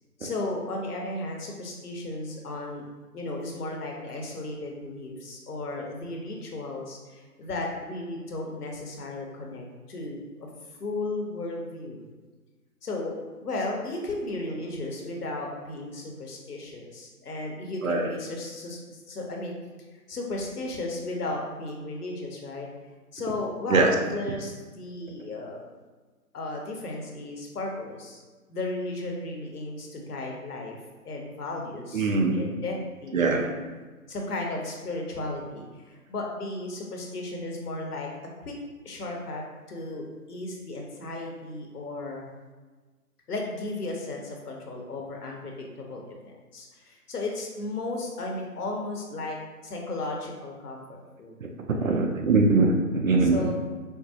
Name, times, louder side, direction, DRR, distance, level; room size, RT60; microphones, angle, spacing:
voice 1, 0.2-2.8 3.1-10.5 10.8-12.0 12.8-13.1 13.4-19.5 20.1-22.7 23.1-25.6 26.3-28.2 28.5-30.8 31.0-33.6 34.1-38.1 38.4-38.5 38.8-39.4 39.7-42.3 43.3-49.4 49.6-51.3 51.7-52.1 53.2-53.5, left 2 dB, 75° left, 0 dB, 0.9 m, -35 dB
voice 2, 31.9-32.4 33.1-33.5 51.8-53.5, right 3 dB, 60° right, 3 dB, 0.5 m, -22 dB
4.4 x 2.0 x 2.7 m, 1.3 s
figure-of-eight pair, 160°, 46 cm